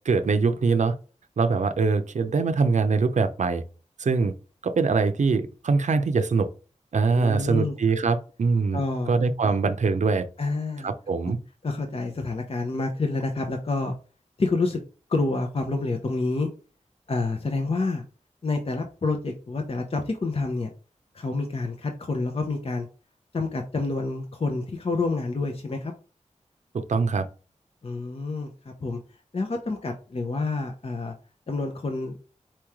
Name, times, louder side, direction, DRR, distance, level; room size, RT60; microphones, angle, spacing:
voice 1, 0.1-1.0 1.4-3.6 4.0-4.3 4.6-6.5 6.9-8.8 9.1-10.3 10.8-11.4 26.7-27.3, right 4 dB, 70° right, 0.5 m, -23 dB
voice 2, 7.1-7.8 8.1-8.2 8.7-9.1 9.4-9.5 10.4-10.9 11.2-11.3 11.6-13.9 14.4-14.8 15.1-16.5 17.1-18.0 18.4-20.7 21.1-22.9 23.3-25.9 27.8-29.0 29.3-31.1 31.5-32.3, left 3 dB, 50° left, 0.7 m, -28 dB
4.4 x 3.1 x 3.5 m
wide cardioid pair, 90°, 13 cm